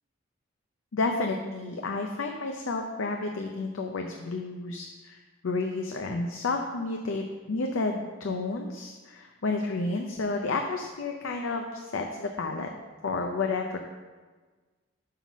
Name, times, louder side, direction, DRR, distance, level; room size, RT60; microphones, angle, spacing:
voice 1, 0.9-12.7 13.0-13.8, left 3 dB, 70° left, 3 dB, 0.6 m, -31 dB
5.7 x 5.6 x 6.0 m, 1.3 s
head